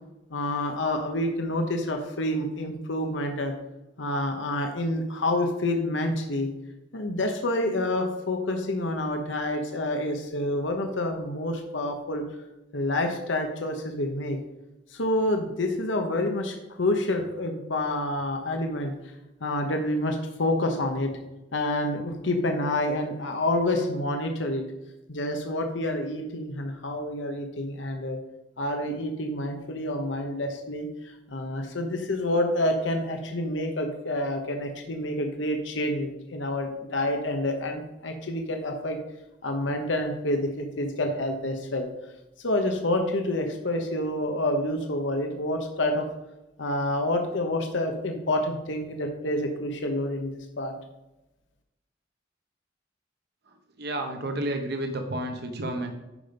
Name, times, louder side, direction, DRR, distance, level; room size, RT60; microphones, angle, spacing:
voice 1, 0.3-3.5 4.0-6.5 6.9-12.2 12.7-14.4 14.9-18.9 19.4-21.1 21.5-24.6 25.1-28.2 28.6-39.0 39.4-41.9 42.4-46.1 46.6-50.7, left 1 dB, 80° left, 4 dB, 1.0 m, -28 dB
voice 2, 53.8-55.9, right 1 dB, 60° right, 4 dB, 1.1 m, -31 dB
10.0 x 5.2 x 5.3 m, 0.98 s
head